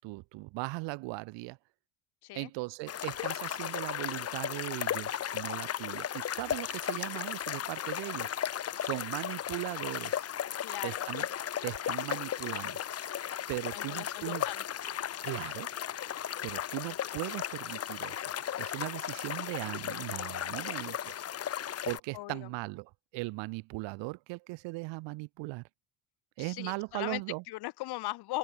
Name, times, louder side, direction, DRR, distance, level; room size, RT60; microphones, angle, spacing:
voice 1, 0.0-1.6 2.3-8.3 8.8-10.3 10.8-11.3 11.6-12.8 13.5-14.4 15.2-15.7 16.4-18.3 18.6-21.2 21.8-25.6 26.4-27.4, right 24 dB, 70° right, 7.4 m, -38 dB
sound 1, 2.9-22.0, left 10 dB, 30° left, 5.2 m, -36 dB
voice 2, 10.6-11.1 13.7-14.6 22.1-22.5 26.4-27.2 27.5-28.4, left 18 dB, 55° left, 6.5 m, -39 dB
open air
cardioid pair, 175°, 45 cm